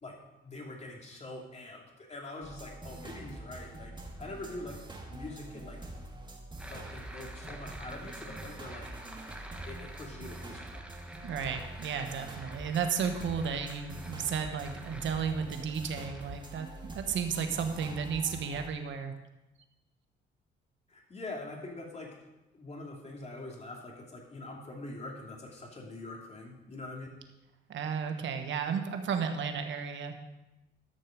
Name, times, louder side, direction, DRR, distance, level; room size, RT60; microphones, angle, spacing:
voice 1, 0.0-4.8 5.1-5.8 6.7-8.9 9.7-10.9 20.9-22.2 22.5-27.1, left 2 dB, 35° left, 0 dB, 2.8 m, -44 dB
sound 1, 2.4-18.7, right 1 dB, 25° right, 1.7 m, -45 dB
sound 2, 6.6-17.5, right 1 dB, 5° right, 1.3 m, -50 dB
voice 2, 11.2-19.1 27.7-30.2, right 6 dB, 70° right, 6 dB, 1.3 m, -33 dB
12.5 x 6.7 x 5.1 m, 0.99 s
cardioid pair, 90°, 20 cm